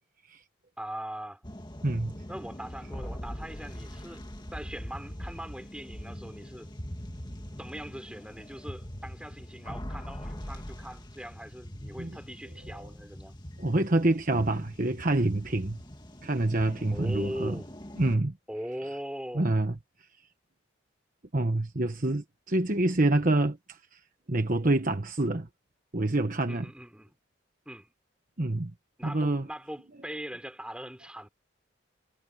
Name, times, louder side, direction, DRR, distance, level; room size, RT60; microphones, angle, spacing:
voice 1, 0.8-1.4 2.3-4.2 4.5-6.7 7.6-13.4 16.9-17.7 18.5-19.5 26.5-27.1 27.6-27.9 29.0-31.3, equal, 5° right, 6.3 m, -40 dB
sound 1, 1.4-18.2, equal, 20° left, 2.2 m, -42 dB
voice 2, 1.8-2.1 12.0-12.2 13.6-15.8 16.2-17.6 18.0-18.3 19.3-19.7 21.3-24.0 24.3-25.5 25.9-26.7 28.4-28.7 29.0-29.5, right 2 dB, 40° right, 1.2 m, -27 dB
head